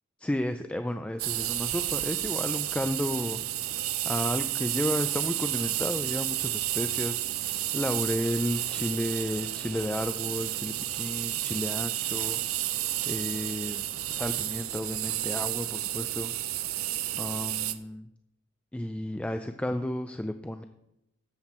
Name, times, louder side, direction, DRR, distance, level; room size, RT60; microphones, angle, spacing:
voice 1, 0.2-3.4 4.0-7.2 7.7-12.4 13.1-16.3 17.2-18.1 18.7-20.6, left 1 dB, 5° left, 8 dB, 0.4 m, -32 dB
sound 1, 1.2-17.7, right 13 dB, 70° right, 0.6 m, -31 dB
13.0 x 7.8 x 4.3 m, 0.85 s
head